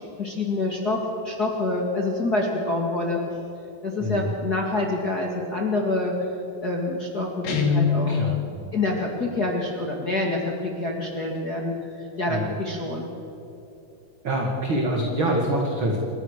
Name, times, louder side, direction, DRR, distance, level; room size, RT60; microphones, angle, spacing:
voice 1, 0.2-3.2 3.8-6.3 6.6-8.2 8.7-13.1, left 2 dB, 30° left, -1 dB, 2.1 m, -26 dB
voice 2, 4.0-4.3 7.8-8.7 12.3-12.5 14.2-16.0, right 1 dB, 40° right, 0 dB, 2.5 m, -26 dB
Guitar, 7.4-8.2, left 5 dB, 75° left, 4.3 m, -22 dB
28.5 x 14.5 x 6.7 m, 2.9 s
omnidirectional pair, 4.3 m